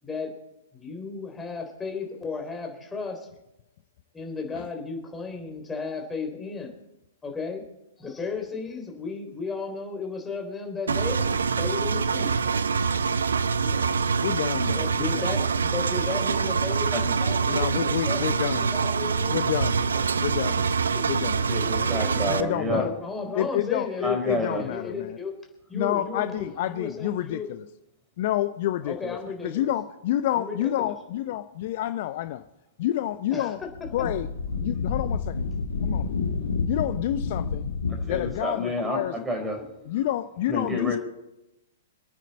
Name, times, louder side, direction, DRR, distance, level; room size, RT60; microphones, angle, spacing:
voice 1, 0.7-3.3 4.1-6.7 7.2-7.6 8.0-12.7 13.6-14.0 14.7-19.4 19.7-20.0 20.5-21.0 21.6-25.3 25.7-27.5 28.8-29.7 30.3-30.9 33.3-33.5, left 4 dB, 10° left, 2 dB, 3.6 m, -35 dB
Engine, 10.9-22.4, right 5 dB, 75° right, 0.7 m, -25 dB
voice 2, 14.2-15.4 17.0-17.2 17.5-18.7 19.3-19.8 20.2-20.6 21.0-21.4 22.2-22.9 23.3-25.2 25.7-27.6 28.2-32.4 32.8-33.6 33.9-34.3 34.6-35.4 35.8-36.1 36.7-37.7 38.1-39.2 39.9-41.0, left 13 dB, 50° left, 12 dB, 0.6 m, -29 dB
voice 3, 21.5-22.9 24.0-24.6 38.1-39.6 40.5-41.0, left 1 dB, 10° right, 3 dB, 4.4 m, -28 dB
Wind, 33.6-38.4, left 4 dB, 75° left, 1.6 m, -29 dB
27.0 x 9.3 x 4.3 m, 0.89 s
figure-of-eight pair, 110°, 0 cm